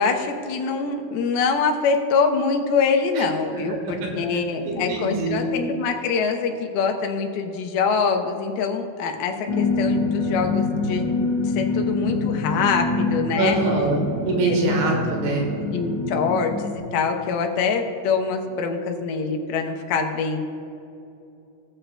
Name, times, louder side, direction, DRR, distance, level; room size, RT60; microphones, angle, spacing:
voice 1, 0.0-11.1 11.6-13.6 14.5-14.6 15.0-15.1 15.7-20.4, left 5 dB, 80° left, 4 dB, 2.8 m, -24 dB
voice 2, 3.5-4.1 4.6-5.4 13.3-15.5, right 2 dB, 80° right, 0 dB, 3.4 m, -24 dB
sound 1, 9.5-16.8, left 3 dB, 60° left, 1.8 m, -25 dB
20.0 x 7.3 x 2.2 m, 2.8 s
omnidirectional pair, 4.5 m